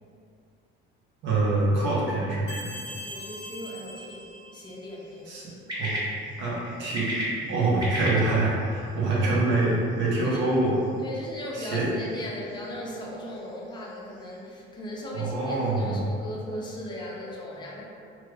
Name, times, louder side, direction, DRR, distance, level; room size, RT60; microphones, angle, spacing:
voice 1, 1.2-2.7 5.3-5.4 5.8-5.9 6.4-7.1 7.5-10.7 11.5-11.8 15.1-16.0, right 2 dB, 65° right, -5 dB, 0.9 m, -25 dB
sound 1, 2.5-5.0, left 1 dB, 65° left, 0.7 m, -41 dB
sound 2, 2.8-14.5, right 1 dB, 20° right, 0.7 m, -39 dB
voice 2, 3.0-5.4 9.1-9.4 10.2-10.4 11.0-17.8, equal, 20° left, -4 dB, 0.6 m, -38 dB
2.9 x 2.3 x 3.2 m, 2.4 s
cardioid pair, 135°, 21 cm